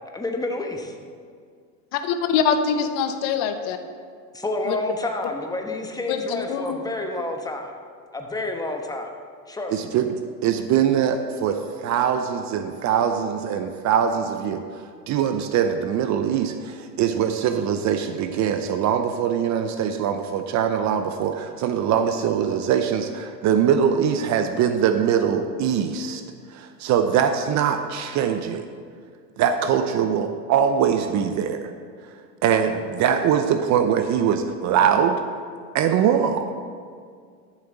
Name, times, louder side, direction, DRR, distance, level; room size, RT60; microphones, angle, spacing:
voice 1, 0.1-0.9 4.3-7.7 8.1-9.1 9.5-9.9, left 2 dB, 5° left, 3 dB, 1.1 m, -29 dB
voice 2, 1.9-3.8 4.7-4.8 6.1-6.8, left 7 dB, 50° left, 8 dB, 0.9 m, -24 dB
voice 3, 9.7-10.1 10.4-14.6 15.1-26.2 26.5-28.7 29.4-31.6 32.4-35.2 35.7-36.4, right 8 dB, 35° right, 8 dB, 0.6 m, -22 dB
13.0 x 7.3 x 3.9 m, 2.1 s
hypercardioid pair, 100°, 49 cm